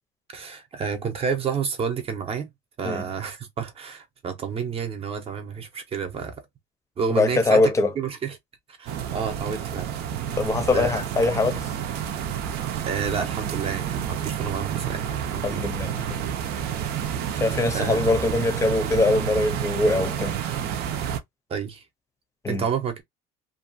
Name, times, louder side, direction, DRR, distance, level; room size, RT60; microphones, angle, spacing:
voice 1, 0.3-2.5 2.8-6.3 7.0-7.6 8.0-8.4 8.8-9.9 10.2-10.3 10.7-11.1 12.8-15.6 17.3-17.4 17.7-18.2 21.5-21.8 22.5-23.0, right 6 dB, 35° right, 0.8 m, -30 dB
voice 2, 7.1-7.9 10.4-11.7 15.4-16.2 17.4-20.4 22.4-22.6, left 2 dB, 15° left, 0.7 m, -22 dB
sound 1, 8.9-21.2, right 9 dB, 65° right, 0.6 m, -29 dB
2.6 x 2.3 x 2.5 m
cardioid pair, 140°, 18 cm